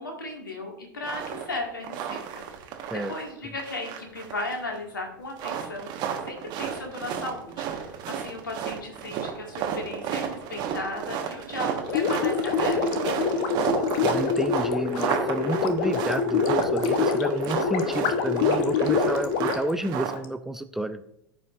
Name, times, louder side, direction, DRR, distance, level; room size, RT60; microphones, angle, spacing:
voice 1, 0.0-2.4 3.1-13.2, left 2 dB, 75° left, 1 dB, 1.9 m, -36 dB
sound 1, 1.0-1.5 1.8-3.3 3.6-4.8 5.3-20.1, right 8 dB, 40° right, 1.3 m, -32 dB
Gurgling, 11.9-20.3, left 6 dB, 45° left, 0.8 m, -26 dB
voice 2, 14.0-21.0, right 1 dB, 5° right, 13 dB, 0.3 m, -30 dB
13.5 x 5.1 x 2.5 m, 0.78 s
figure-of-eight pair, 85°, 11 cm